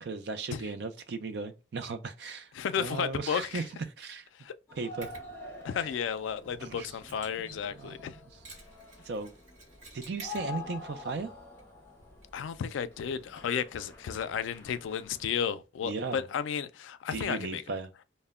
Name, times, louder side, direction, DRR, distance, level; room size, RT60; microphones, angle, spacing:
voice 1, 0.0-2.5 2.8-3.7 4.0-4.3 4.8-5.1 6.6-6.9 7.4-8.1 9.0-9.3 9.9-11.3 15.8-16.2 17.1-17.9, right 4 dB, 60° right, 0.4 m, -36 dB
voice 2, 2.5-3.6 4.4-4.5 5.6-8.1 12.3-17.6, left 7 dB, 85° left, 0.3 m, -33 dB
sound 1, 4.7-15.5, left 3 dB, 15° left, 0.5 m, -47 dB
Mechanisms, 5.0-14.9, right 2 dB, 40° right, 1.1 m, -56 dB
2.1 x 2.1 x 3.4 m
head